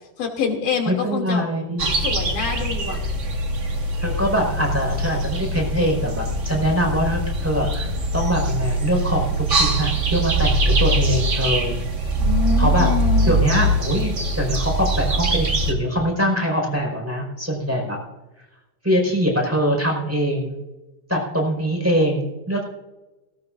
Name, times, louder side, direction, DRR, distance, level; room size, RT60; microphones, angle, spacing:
voice 1, 0.2-1.4 2.0-3.0 12.2-13.3, left 6 dB, 70° left, 2 dB, 4.0 m, -25 dB
voice 2, 0.9-1.9 4.0-11.7 12.6-12.9 13.3-18.0 18.8-20.5 21.1-22.6, equal, 5° right, 0 dB, 4.5 m, -23 dB
sound 1, 1.8-15.7, right 1 dB, 40° right, 1.1 m, -22 dB
19.0 x 18.5 x 2.6 m, 1.0 s
omnidirectional pair, 3.8 m